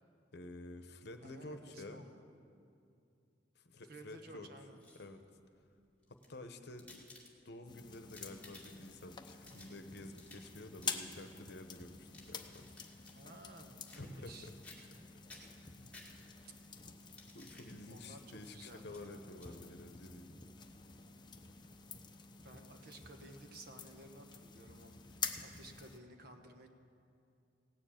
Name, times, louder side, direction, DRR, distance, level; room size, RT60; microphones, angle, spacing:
voice 1, 0.3-2.1 3.6-4.5 5.0-5.2 6.3-7.0 7.4-12.6 13.9-14.5 15.7-15.9 17.3-20.4, left 2 dB, 65° left, 7 dB, 0.9 m, -50 dB
voice 2, 1.2-2.2 3.9-4.8 13.1-14.5 16.4-16.5 17.9-19.3 22.4-26.7, right 2 dB, 60° right, 5 dB, 1.2 m, -55 dB
sound 1, 4.6-5.3 6.0-7.6 8.0-8.9 9.3-10.5 10.8-11.0 11.9-13.2 13.8-14.3 14.6-15.0 15.3-16.5 17.0-17.7 18.4-18.5 18.9-19.0 19.3-19.5, left 2 dB, 10° left, 2.1 m, -58 dB
sound 2, 7.7-26.0, left 6 dB, 25° left, 0.7 m, -48 dB
17.0 x 7.2 x 8.9 m, 2.5 s
head